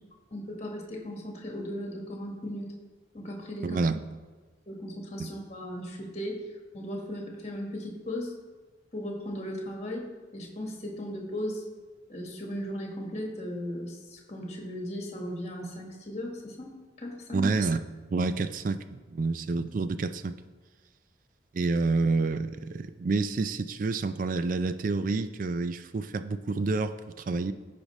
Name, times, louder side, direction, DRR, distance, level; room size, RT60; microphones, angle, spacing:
voice 1, 0.3-2.7 3.1-3.8 4.7-6.5 6.7-8.3 8.9-10.1 10.3-11.6 12.1-17.5, equal, 35° left, 0 dB, 1.4 m, -37 dB
voice 2, 3.6-4.0 5.2-5.3 17.3-17.8 18.1-20.4 21.5-27.5, right 3 dB, 45° right, 11 dB, 0.3 m, -28 dB
15.0 x 5.1 x 3.1 m, 1.3 s
head